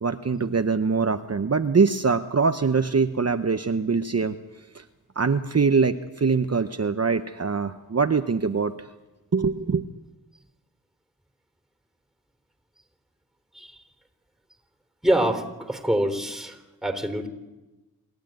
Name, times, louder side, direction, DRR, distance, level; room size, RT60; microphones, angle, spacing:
voice 1, 0.0-4.4 4.7-4.8 5.2-8.7 9.3-9.8, right 5 dB, 40° right, 8 dB, 0.9 m, -23 dB
voice 2, 15.0-17.3, right 1 dB, ahead, 8 dB, 3.5 m, -25 dB
28.0 x 12.5 x 9.2 m, 1.1 s
cardioid pair, 55°, 38 cm